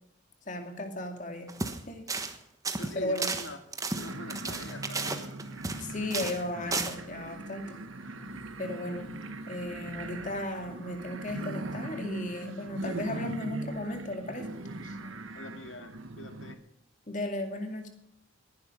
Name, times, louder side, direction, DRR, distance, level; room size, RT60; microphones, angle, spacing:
voice 1, 0.5-1.5 1.9-2.1 2.9-3.3 5.8-7.8 8.6-9.1 9.5-14.5 14.8-15.0 17.1-17.9, left 1 dB, 40° left, 5 dB, 2.3 m, -35 dB
sound 1, 1.5-1.8 2.1-2.4 2.6-5.8 6.1-6.4 6.7-6.9, right 3 dB, 15° right, 1.2 m, -33 dB
voice 2, 2.8-3.6 4.0-5.4 15.3-16.6, left 2 dB, 70° left, 6 dB, 2.2 m, -44 dB
sound 2, 3.9-16.5, right 2 dB, 85° right, 1.4 m, -40 dB
19.0 x 11.5 x 5.3 m, 0.81 s
head